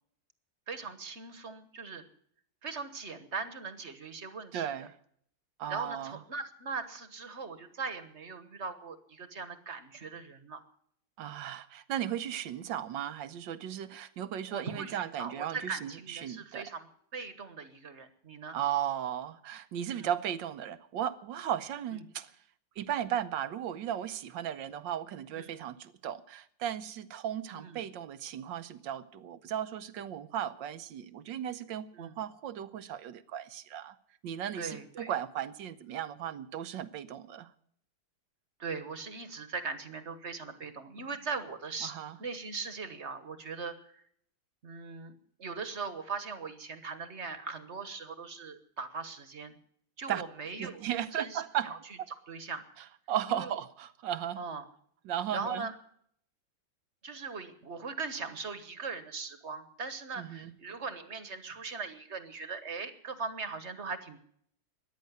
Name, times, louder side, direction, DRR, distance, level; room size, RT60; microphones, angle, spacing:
voice 1, 0.7-2.0 2.6-4.9 5.7-10.6 14.5-18.6 19.9-20.1 25.4-25.5 27.5-27.8 31.9-32.2 34.5-35.1 38.6-41.9 42.2-44.0 44.6-49.6 50.0-50.8 51.1-51.8 52.3-52.6 53.3-53.5 54.4-54.7 55.3-55.8 57.0-64.2, right 4 dB, 40° right, 11 dB, 1.4 m, -40 dB
voice 2, 4.5-4.9 5.6-6.2 11.2-16.6 18.5-22.3 22.8-34.0 34.2-37.5 41.8-42.2 50.1-50.2 50.6-51.7 53.1-54.4 55.0-55.7 60.2-60.5, right 10 dB, 75° right, 13 dB, 1.4 m, -36 dB
14.0 x 10.5 x 9.3 m, 0.66 s
omnidirectional pair, 2.1 m